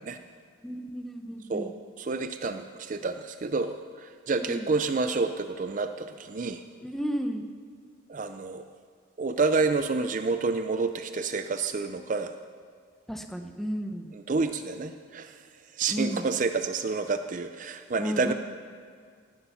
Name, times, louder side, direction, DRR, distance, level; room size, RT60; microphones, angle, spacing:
voice 1, 0.6-1.7 4.4-4.7 6.8-7.4 13.1-14.1 15.9-16.3 18.0-18.3, equal, ahead, 5 dB, 0.8 m, -33 dB
voice 2, 2.0-6.6 8.1-8.7 9.2-12.3 14.1-15.4 15.7-18.3, right 4 dB, 40° right, 9 dB, 0.4 m, -29 dB
17.0 x 11.5 x 5.7 m, 2.1 s
head